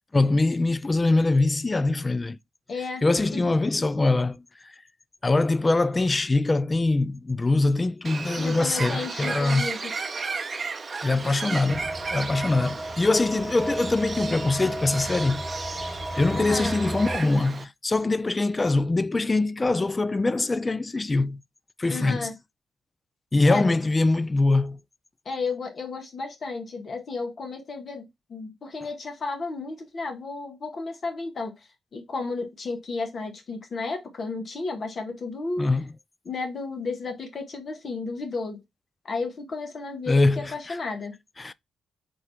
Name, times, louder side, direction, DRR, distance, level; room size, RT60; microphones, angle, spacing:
voice 1, 0.1-2.4 3.0-4.7 5.2-9.7 11.0-21.4 21.8-22.3 23.3-24.8 35.6-35.8 40.1-40.8 41.4-41.5, left 2 dB, 30° left, 0.4 m, -23 dB
voice 2, 2.7-3.0 3.3-3.5 8.4-9.9 16.3-16.7 21.9-22.3 23.4-23.7 25.2-35.7 36.2-38.6 39.0-41.2, left 3 dB, 55° left, 1.5 m, -33 dB
Bird, 8.0-17.6, right 4 dB, 45° right, 0.5 m, -34 dB
sound 1, 11.7-17.2, right 1 dB, 5° right, 1.7 m, -34 dB
3.9 x 3.7 x 3.3 m
hypercardioid pair, 45°, 0 cm